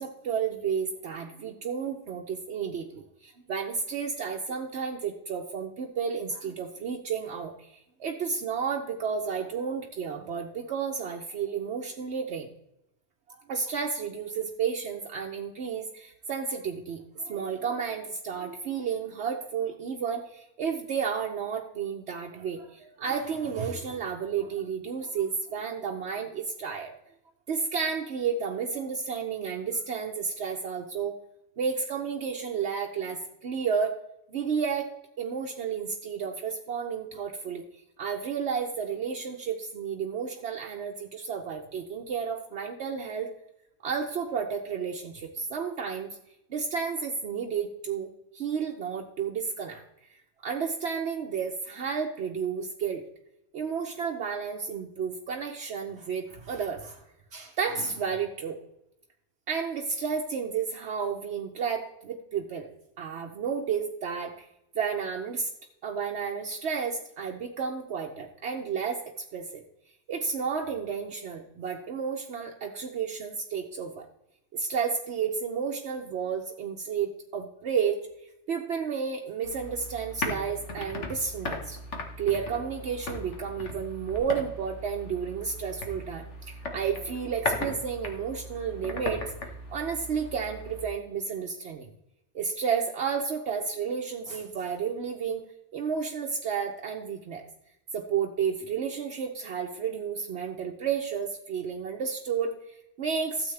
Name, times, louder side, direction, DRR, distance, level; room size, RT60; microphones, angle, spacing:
voice 1, 0.0-12.5 13.3-26.9 27.5-31.2 31.6-34.0 34.3-37.7 38.0-43.3 43.8-46.1 46.5-48.1 48.3-49.8 50.1-53.0 53.5-57.0 57.3-58.6 59.5-62.7 63.0-64.5 64.7-65.5 65.8-69.6 70.1-74.1 74.5-78.0 78.5-81.8 82.2-91.9 92.3-95.5 95.7-97.5 97.9-103.5, right 6 dB, 70° right, 2 dB, 1.0 m, -32 dB
sound 1, 79.4-90.8, left 2 dB, 90° left, 1.7 m, -37 dB
13.0 x 7.8 x 3.3 m, 0.84 s
omnidirectional pair, 1.2 m